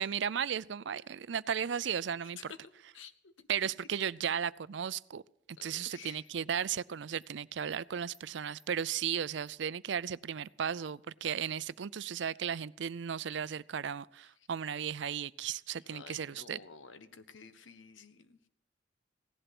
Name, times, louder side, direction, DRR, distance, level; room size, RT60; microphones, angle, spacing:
voice 1, 0.0-2.5 3.5-5.2 5.6-16.6, right 8 dB, 65° right, 19 dB, 0.5 m, -35 dB
voice 2, 2.2-2.6 2.9-3.5 5.6-6.3 15.8-18.4, left 6 dB, 85° left, 11 dB, 1.3 m, -51 dB
Animal, 5.8-5.9 6.2-6.3 6.8-6.9 7.2-7.3 7.7-7.8 8.1-8.2 8.6-8.7 9.0-9.1 9.5-9.6 9.9-10.0 10.4-10.5 10.9-11.0 11.3-11.4 11.7-12.1 12.4-12.5 12.8-12.9 13.2-13.3 13.7-13.8 14.2-14.3 14.6-14.7, left 2 dB, 25° left, 3.5 m, -67 dB
17.0 x 11.5 x 6.0 m, 0.76 s
head